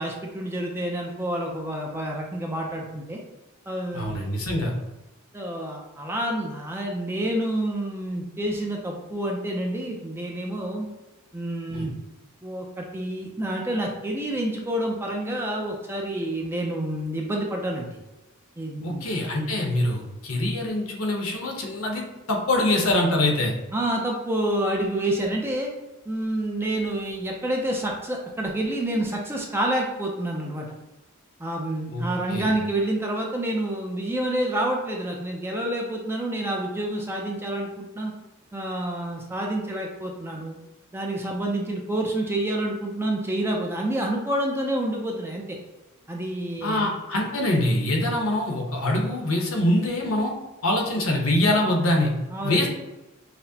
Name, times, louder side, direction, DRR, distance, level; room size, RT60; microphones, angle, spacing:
voice 1, 0.0-3.2 3.7-4.2 5.3-10.9 11.3-11.9 12.4-17.9 18.6-19.0 23.7-25.7 26.1-30.7 31.4-38.1 38.5-40.6 40.9-45.6 46.1-46.9 52.3-52.6, right 1 dB, 10° right, 0 dB, 0.4 m, -28 dB
voice 2, 3.9-4.7 11.7-11.9 18.8-23.5 31.9-32.0 32.3-32.5 46.6-50.3 50.6-52.1 52.4-52.7, left 1 dB, 70° left, 0 dB, 0.9 m, -24 dB
5.8 x 2.1 x 2.7 m, 1.0 s
head